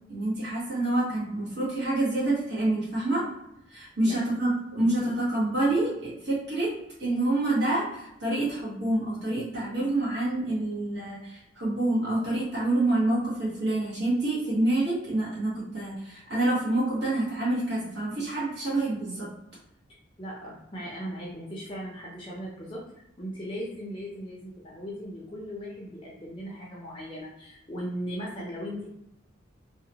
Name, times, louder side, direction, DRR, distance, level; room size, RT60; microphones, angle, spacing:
voice 1, 0.1-3.2 3.7-6.7 7.0-19.3, right 2 dB, 55° right, -8 dB, 1.1 m, -27 dB
voice 2, 20.2-22.8 23.2-28.9, equal, 25° left, -5 dB, 0.5 m, -38 dB
2.8 x 2.1 x 2.8 m, 0.81 s
head